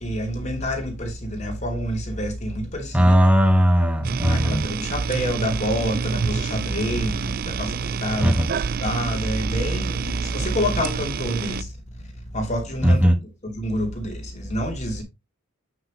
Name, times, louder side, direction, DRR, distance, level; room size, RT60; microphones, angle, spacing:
voice 1, 0.0-3.2 4.3-8.4 8.8-11.7 12.0-13.1 13.4-15.0, equal, 35° left, 2.9 m, -28 dB
voice 2, 2.9-4.7 8.2-8.5 12.8-13.2, equal, 5° right, 1.2 m, -17 dB
sound 1, 4.0-11.6, right 5 dB, 45° right, 0.3 m, -27 dB
8.8 x 5.9 x 3.1 m
head